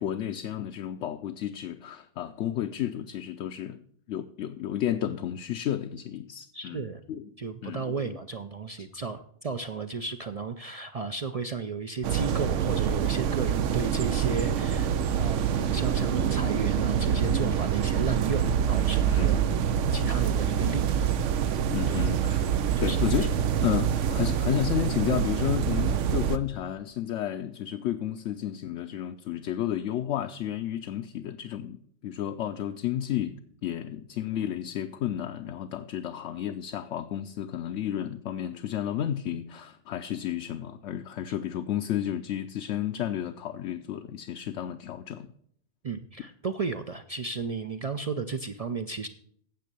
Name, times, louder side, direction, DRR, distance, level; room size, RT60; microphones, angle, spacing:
voice 1, 0.0-3.8 4.1-6.8 7.1-7.3 7.6-7.9 8.8-8.9 19.1-19.5 21.7-22.5 22.8-23.3 23.6-33.4 33.6-45.3, left 11 dB, 75° left, 0.9 m, -32 dB
voice 2, 6.5-7.0 7.4-19.6 19.9-21.1 21.9-22.1 22.7-23.3 45.8-49.1, right 4 dB, 50° right, 0.4 m, -34 dB
sound 1, 12.0-26.4, right 8 dB, 90° right, 1.0 m, -26 dB
9.2 x 7.4 x 6.8 m
omnidirectional pair, 1.2 m